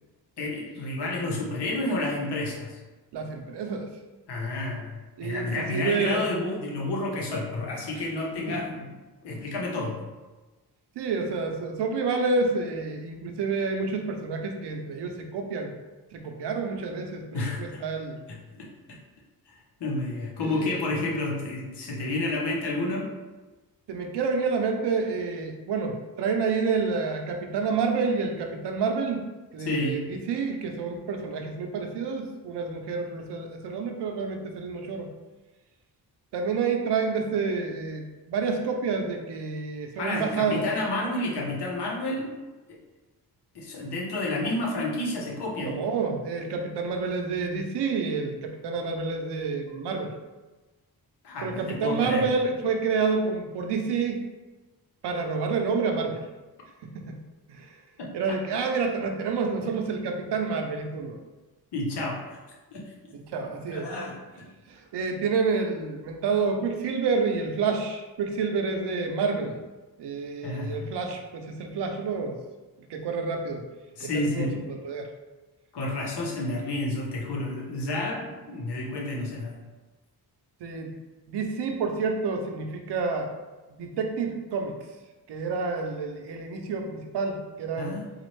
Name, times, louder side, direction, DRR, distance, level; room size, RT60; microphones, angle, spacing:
voice 1, 0.4-2.8 4.3-8.9 9.2-10.0 17.3-17.9 18.3-18.7 19.8-23.1 29.6-30.0 40.0-42.3 42.7-42.8 43.5-45.8 51.2-52.3 58.0-58.4 61.7-62.4 62.7-62.9 63.7-64.5 70.4-70.8 74.0-74.6 75.7-79.6 87.8-88.0, left 2 dB, 80° left, -2 dB, 1.0 m, -30 dB
voice 2, 3.1-3.9 5.2-6.2 8.5-8.6 11.0-15.7 16.1-18.2 20.4-20.8 23.9-29.3 29.5-35.1 36.3-40.7 45.6-50.1 51.4-54.2 55.0-56.3 56.8-57.2 57.5-57.7 58.1-61.2 63.1-63.9 64.7-69.6 70.0-72.4 72.9-73.6 74.0-75.1 80.6-80.9 81.3-83.3 83.7-84.8 85.3-88.0, right 4 dB, 85° right, 4 dB, 0.6 m, -29 dB
4.1 x 2.4 x 3.1 m, 1.2 s
wide cardioid pair, 120°, 40 cm